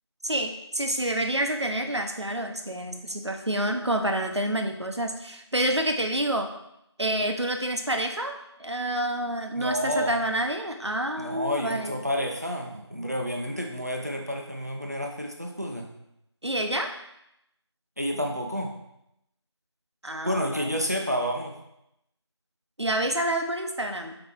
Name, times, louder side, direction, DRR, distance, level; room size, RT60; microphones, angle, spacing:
voice 1, 0.2-6.5 7.0-8.3 8.6-11.9 16.4-16.9 20.0-20.8 22.8-24.2, right 1 dB, 70° right, 5 dB, 1.0 m, -28 dB
voice 2, 9.6-10.2 11.2-15.9 18.0-18.7 20.2-21.6, equal, 35° right, 1 dB, 0.8 m, -30 dB
5.5 x 4.8 x 4.6 m, 0.81 s
figure-of-eight pair, 175°, 15 cm